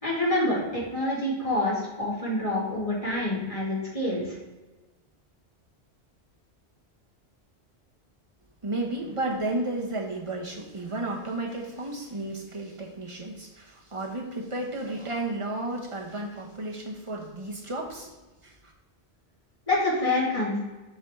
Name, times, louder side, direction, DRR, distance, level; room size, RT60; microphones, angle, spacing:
voice 1, 0.0-4.4 19.7-20.6, left 1 dB, 30° left, -7 dB, 2.1 m, -27 dB
voice 2, 8.6-18.1 18.4-18.7, right 2 dB, 30° right, -1 dB, 1.1 m, -33 dB
7.0 x 4.6 x 3.6 m, 1.2 s
omnidirectional pair, 1.1 m